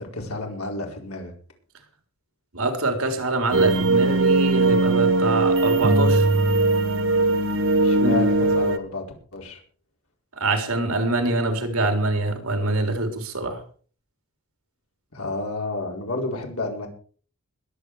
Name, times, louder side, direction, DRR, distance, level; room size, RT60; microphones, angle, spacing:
voice 1, 0.0-1.3 7.8-9.0 9.3-9.6 15.1-16.9, left 2 dB, 85° left, 2 dB, 4.5 m, -30 dB
voice 2, 2.5-6.3 7.9-8.1 10.3-13.6, right 2 dB, 85° right, 6 dB, 3.6 m, -25 dB
sound 1, 3.5-8.8, right 2 dB, 60° right, 1.4 m, -19 dB
21.5 x 8.4 x 4.8 m, 0.43 s
head